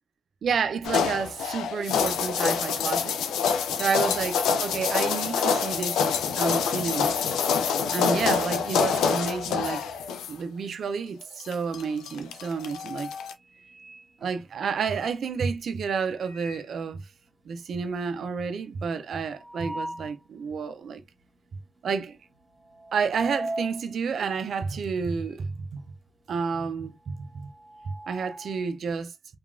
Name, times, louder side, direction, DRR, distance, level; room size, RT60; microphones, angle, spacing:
voice 1, 0.4-3.2 3.7-6.1 6.4-7.2 7.9-9.9 10.3-13.1 14.2-17.0 17.5-21.0 21.8-22.2 22.9-25.8 26.3-27.5 28.1-29.1, right 5 dB, 70° right, 0.4 m, -30 dB
sound 1, 0.8-10.3 11.2-13.3, left 6 dB, 85° left, 0.4 m, -26 dB
sound 2, 12.1-12.5 12.9-15.0 15.9-16.9 17.3-17.4 17.6-17.7 18.1-20.2 20.7-20.8 21.6-21.9 22.2-25.5 25.8-28.7, right 1 dB, 35° right, 1.3 m, -41 dB
2.8 x 2.2 x 2.5 m
supercardioid pair, 45°, 0 cm